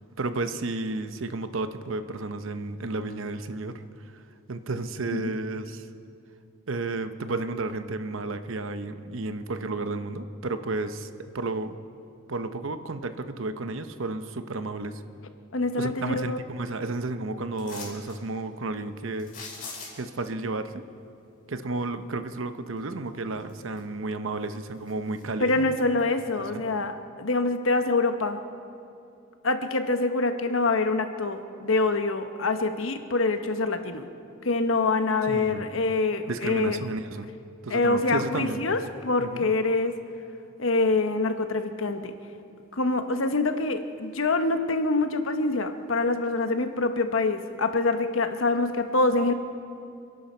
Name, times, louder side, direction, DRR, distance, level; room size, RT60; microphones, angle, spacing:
voice 1, 0.2-4.2 4.5-5.9 6.7-11.8 12.3-15.0 15.7-19.3 20.0-20.8 21.5-25.8 26.4-26.6 35.3-35.7 36.3-37.3 37.6-38.7 39.2-39.5, right 3 dB, 75° right, 10 dB, 0.8 m, -32 dB
voice 2, 15.5-16.4 25.4-28.4 29.4-34.1 34.4-36.8 37.7-40.0 40.6-42.1 42.7-49.3, left 3 dB, 75° left, 8 dB, 1.1 m, -25 dB
sound 1, 17.6-18.2 19.2-20.2 22.8-22.9 23.4-24.1 24.4-25.5 26.0-26.1, left 4 dB, 40° left, 5.2 m, -42 dB
28.5 x 11.0 x 4.4 m, 2.6 s
head